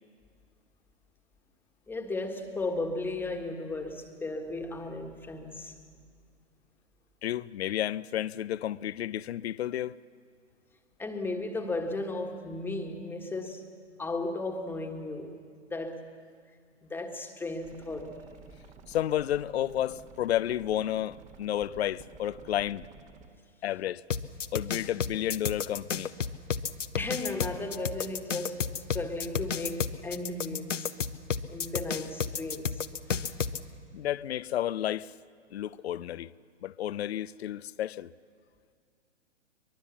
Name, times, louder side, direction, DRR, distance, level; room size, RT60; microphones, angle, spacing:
voice 1, 1.9-5.8 11.0-13.6 14.0-16.0 16.8-18.1 26.9-30.9 31.5-32.8 33.1-33.3, left 2 dB, 5° left, 1.6 m, -35 dB
voice 2, 7.2-9.9 18.9-22.8 23.6-24.0 24.5-26.1 33.9-35.1 35.5-36.3 36.6-38.1, left 12 dB, 60° left, 0.6 m, -31 dB
sound 1, 17.6-23.3, right 4 dB, 20° right, 1.3 m, -52 dB
sound 2, 24.1-33.6, left 6 dB, 85° left, 1.0 m, -32 dB
23.5 x 21.5 x 7.2 m
hypercardioid pair, 125°, 36 cm